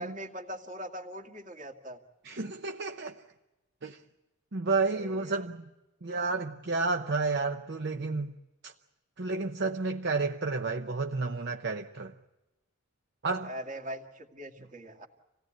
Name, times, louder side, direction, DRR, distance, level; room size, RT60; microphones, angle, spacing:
voice 1, 0.0-2.0 4.9-5.5 13.4-15.1, right 1 dB, 35° right, 2.1 m, -41 dB
voice 2, 2.2-3.2 3.8-4.0 4.5-5.7 6.0-8.4 8.6-8.7 9.2-12.1 13.2-13.5, right 3 dB, 55° right, 0.8 m, -31 dB
27.0 x 17.5 x 8.8 m
head